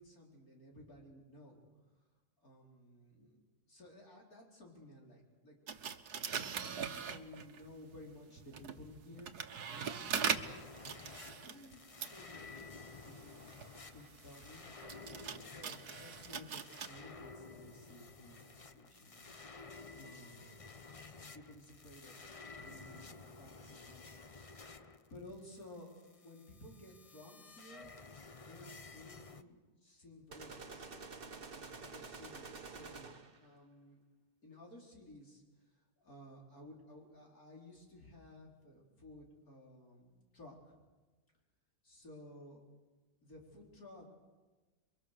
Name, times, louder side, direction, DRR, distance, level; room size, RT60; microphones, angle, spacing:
voice 1, 0.0-1.6 2.4-3.4 3.7-5.6 6.3-10.7 11.3-14.6 15.3-19.3 19.6-20.7 21.3-22.1 22.6-24.7 25.1-26.0 26.2-27.9 28.4-34.0 34.4-40.8 41.8-42.6 43.2-44.1, left 1 dB, 60° left, -1 dB, 5.0 m, -56 dB
sound 1, 5.7-7.7 8.4-16.9, right 7 dB, 70° right, 1.7 m, -42 dB
sound 2, 10.2-29.4, left 4 dB, 30° left, 0.6 m, -53 dB
sound 3, 30.3-33.5, right 4 dB, 35° right, 1.5 m, -49 dB
29.0 x 23.5 x 6.7 m, 1.2 s
omnidirectional pair, 1.7 m